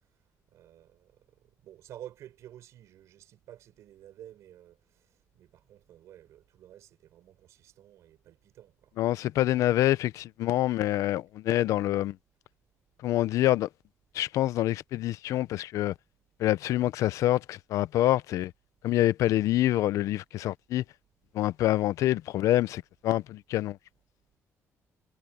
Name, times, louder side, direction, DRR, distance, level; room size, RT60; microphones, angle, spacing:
voice 1, 0.5-1.2 1.6-8.9, right 12 dB, 70° right, 5.0 m, -51 dB
voice 2, 9.0-12.1 13.0-13.7 14.1-15.9 16.4-18.5 18.8-20.8 21.3-23.8, left 14 dB, 80° left, 0.6 m, -26 dB
cardioid pair, 175°, 5 cm